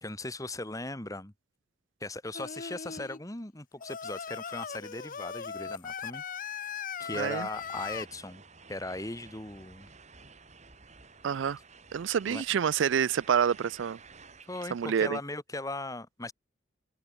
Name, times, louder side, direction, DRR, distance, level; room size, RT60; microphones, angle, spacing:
voice 1, 0.0-1.3 2.0-6.2 7.0-8.4 8.7-9.9 12.3-12.4 14.5-16.3, left 2 dB, 20° left, 1.8 m, -38 dB
Singing, 2.3-3.2 3.8-8.1, left 6 dB, 45° left, 0.7 m, -39 dB
voice 2, 7.1-7.5 11.2-11.6 11.9-14.0 14.7-15.2, right 7 dB, 80° right, 0.4 m, -27 dB
sound 1, 7.5-14.9, right 4 dB, 40° right, 5.0 m, -53 dB
head